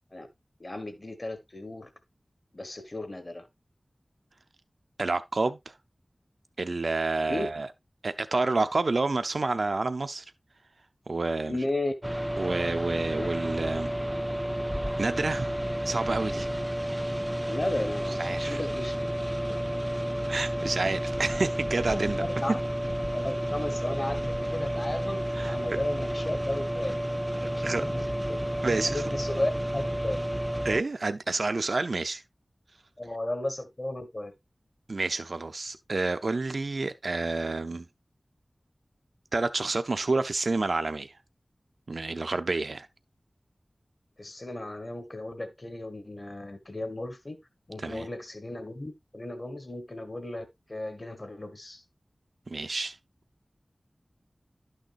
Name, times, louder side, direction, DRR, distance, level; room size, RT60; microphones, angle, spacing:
voice 1, 0.6-1.9 2.5-3.5 7.3-7.5 11.5-11.9 13.1-13.3 17.5-19.0 21.9-22.6 23.1-25.2 25.5-27.0 27.5-30.2 33.0-34.3 44.2-47.4 47.7-51.8, left 1 dB, 40° left, 1.2 m, -35 dB
voice 2, 5.0-5.8 6.6-7.7 8.0-10.2 11.1-11.6 12.4-13.9 15.0-15.6 15.8-16.5 18.2-18.6 20.3-22.2 25.3-25.5 27.4-27.9 28.6-29.0 30.6-32.2 34.9-37.9 39.3-41.2 41.9-42.9 47.8-48.1 52.5-53.0, right 3 dB, 75° right, 0.5 m, -29 dB
sound 1, 12.0-30.8, right 1 dB, 10° right, 0.4 m, -31 dB
11.5 x 6.4 x 2.5 m
wide cardioid pair, 65°, 0 cm